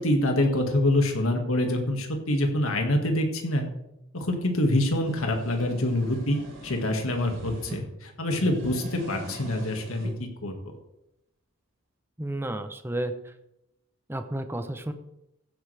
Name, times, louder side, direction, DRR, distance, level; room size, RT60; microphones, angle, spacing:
voice 1, 0.0-3.7 4.1-10.6, left 1 dB, 80° left, 3 dB, 2.0 m, -26 dB
sound 1, 4.7-7.8 8.2-10.1, right 1 dB, 85° right, 4.0 m, -41 dB
voice 2, 12.2-13.3 14.1-14.9, right 1 dB, 10° right, 8 dB, 0.7 m, -32 dB
15.5 x 8.5 x 3.4 m, 0.86 s
head